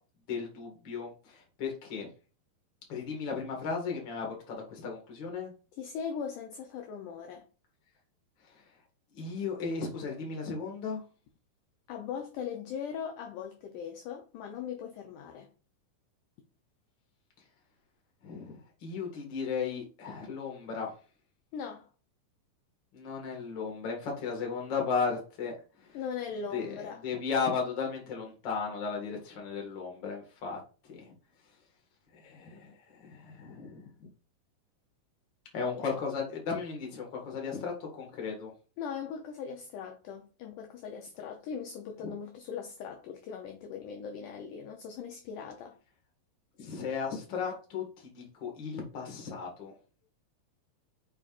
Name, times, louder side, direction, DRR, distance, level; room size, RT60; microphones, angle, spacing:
voice 1, 0.3-2.1 2.9-5.5 9.1-11.0 18.2-20.9 22.9-25.5 25.8-26.0 26.5-30.6 30.9-31.1 32.1-32.7 33.0-34.1 35.5-38.5 46.6-47.8 48.1-49.7, left 5 dB, 40° left, 2.0 m, -35 dB
voice 2, 5.8-7.4 11.9-15.5 21.5-21.9 25.9-27.0 38.8-45.8, left 7 dB, 75° left, 2.0 m, -39 dB
7.5 x 5.1 x 2.5 m
omnidirectional pair, 4.2 m